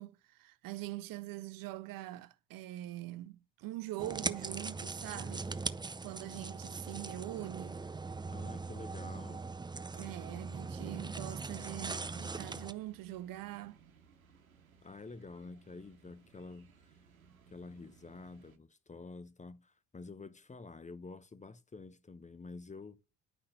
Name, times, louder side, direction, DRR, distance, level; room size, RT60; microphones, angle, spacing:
voice 1, 0.0-5.7 6.0-7.8 9.9-13.8, right 16 dB, 55° right, 0.7 m, -43 dB
sound 1, 4.0-12.7, right 3 dB, 10° right, 0.6 m, -40 dB
voice 2, 8.3-9.5 14.8-16.9 17.5-23.0, left 3 dB, 15° left, 0.8 m, -49 dB
sound 2, 10.5-18.6, right 6 dB, 90° right, 0.9 m, -63 dB
10.5 x 5.6 x 6.6 m
figure-of-eight pair, 50°, 41 cm